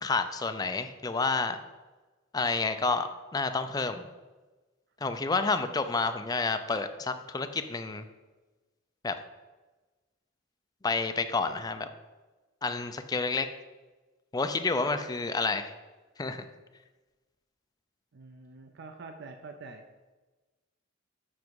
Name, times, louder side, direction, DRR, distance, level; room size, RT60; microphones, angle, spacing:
voice 1, 0.0-1.6 2.3-4.0 5.0-8.0 9.0-9.2 10.8-11.9 12.6-13.5 14.3-15.7 16.2-16.4, left 3 dB, 20° left, 8 dB, 0.4 m, -29 dB
voice 2, 18.1-19.8, right 3 dB, 55° right, 6 dB, 0.5 m, -46 dB
7.3 x 6.0 x 4.7 m, 1.2 s
head